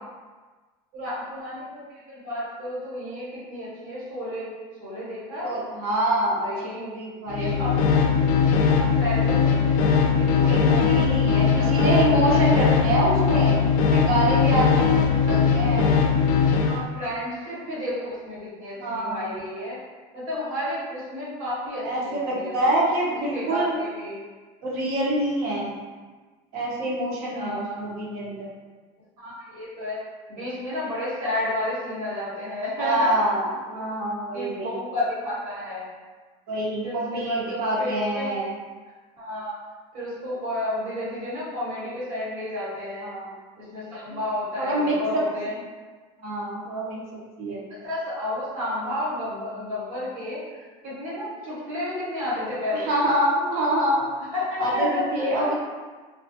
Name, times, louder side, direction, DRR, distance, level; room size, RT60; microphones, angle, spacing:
voice 1, 0.9-5.6 6.4-6.9 7.4-8.1 8.5-10.9 11.3-12.8 15.2-16.0 16.5-19.8 20.1-22.7 23.3-24.2 27.3-28.1 29.2-33.1 33.7-33.8 34.3-35.9 36.8-38.3 39.2-39.6 39.9-43.1 43.6-45.5 47.8-52.9 54.3-55.5, left 1 dB, 85° right, -10 dB, 1.4 m, -32 dB
voice 2, 5.4-7.8 10.4-13.6 13.9-15.9 18.8-19.3 21.8-23.8 24.6-25.7 26.5-28.5 32.8-34.7 36.5-38.5 43.0-43.3 44.6-45.2 46.2-47.7 52.7-54.1 54.6-55.5, right 1 dB, 60° right, -4 dB, 0.8 m, -26 dB
sound 1, 7.3-16.8, left 6 dB, 80° left, 0.4 m, -20 dB
2.5 x 2.3 x 2.7 m, 1.4 s
supercardioid pair, 120°, 18 cm